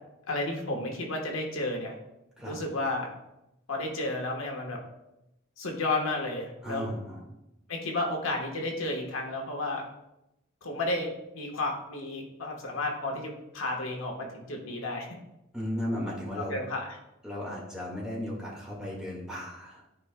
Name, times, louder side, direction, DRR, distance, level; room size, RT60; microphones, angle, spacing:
voice 1, 0.3-1.9 2.4-3.1 3.7-4.8 5.6-6.9 7.7-9.8 10.6-15.1 16.5-17.0, left 2 dB, 70° left, 1 dB, 1.2 m, -32 dB
voice 2, 6.6-7.3 15.5-16.6 17.2-19.8, left 1 dB, 5° right, -5 dB, 1.7 m, -35 dB
13.0 x 4.7 x 2.2 m, 0.91 s
head